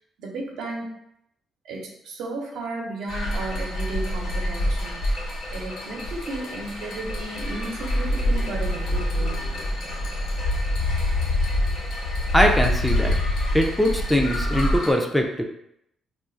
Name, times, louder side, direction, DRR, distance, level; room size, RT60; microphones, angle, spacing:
voice 1, 0.2-1.0 1.6-5.3 5.5-9.5, right 2 dB, 85° right, -1 dB, 0.8 m, -34 dB
sound 1, 3.1-14.9, left 1 dB, 85° left, 0.9 m, -26 dB
voice 2, 12.3-13.2 13.5-15.4, equal, ahead, 2 dB, 0.4 m, -21 dB
2.4 x 2.4 x 3.8 m, 0.78 s
cardioid pair, 90°, 0 cm